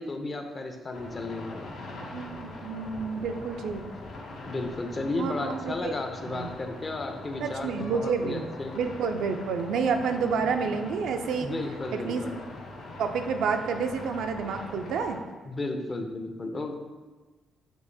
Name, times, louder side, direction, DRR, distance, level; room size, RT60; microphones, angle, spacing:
voice 1, 0.0-1.8 4.4-8.8 11.4-12.4 15.5-16.7, left 2 dB, 30° left, 4 dB, 0.5 m, -34 dB
sound 1, 0.9-15.2, left 2 dB, 70° left, 0.7 m, -42 dB
voice 2, 2.1-3.8 5.2-5.9 6.2-6.5 7.4-11.5 11.9-12.2 13.0-15.2, right 5 dB, 80° right, 6 dB, 0.3 m, -29 dB
Piano, 7.8-9.7, left 2 dB, 50° left, 1.0 m, -50 dB
6.1 x 2.8 x 2.6 m, 1.3 s
cardioid pair, 90°, 0 cm